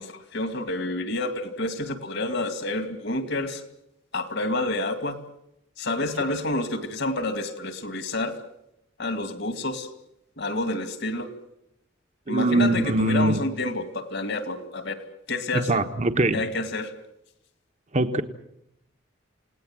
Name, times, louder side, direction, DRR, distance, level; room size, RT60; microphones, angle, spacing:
voice 1, 0.0-3.6 4.1-5.2 5.8-8.4 9.0-9.9 10.4-11.3 12.3-15.0 15.3-15.8 16.3-16.9, left 2 dB, 60° left, 9 dB, 2.5 m, -29 dB
voice 2, 12.3-13.4 15.5-16.4 17.9-18.2, right 2 dB, 35° right, 9 dB, 1.2 m, -22 dB
29.0 x 18.5 x 7.6 m, 0.81 s
head